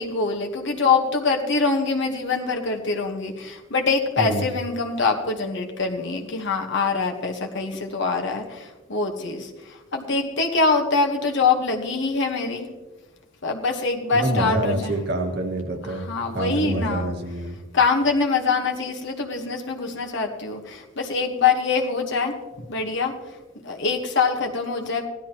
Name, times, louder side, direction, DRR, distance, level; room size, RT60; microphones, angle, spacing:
voice 1, 0.0-12.7 13.4-15.0 15.8-17.1 17.7-22.3 22.7-23.1 23.6-25.1, left 4 dB, 60° left, 2 dB, 1.3 m, -24 dB
voice 2, 4.2-4.5 14.2-16.1 16.3-17.6, right 1 dB, 55° right, 3 dB, 1.7 m, -26 dB
17.0 x 12.0 x 3.0 m, 1.2 s
head